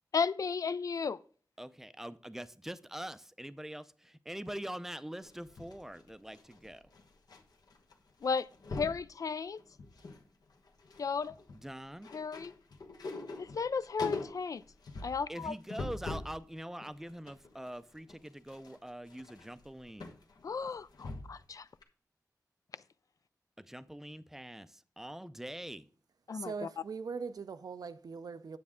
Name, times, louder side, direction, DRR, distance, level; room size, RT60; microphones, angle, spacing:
voice 1, 0.1-1.2 8.2-8.5 8.7-9.6 11.0-11.3 12.1-12.5 13.4-14.6 15.0-15.5 20.4-21.1 26.3-26.7, left 5 dB, 60° left, 0.3 m, -34 dB
voice 2, 1.6-6.8 11.5-12.1 15.3-20.1 23.6-25.8, right 1 dB, 5° right, 0.5 m, -44 dB
sound 1, 5.2-7.4 7.7-7.9 8.2-9.0 9.6-10.2 10.5-16.4 16.8-21.5 21.8-21.9, left 3 dB, 80° left, 1.2 m, -44 dB
voice 3, 26.3-28.6, right 5 dB, 70° right, 0.5 m, -41 dB
9.5 x 7.7 x 3.6 m
wide cardioid pair, 115°, 7 cm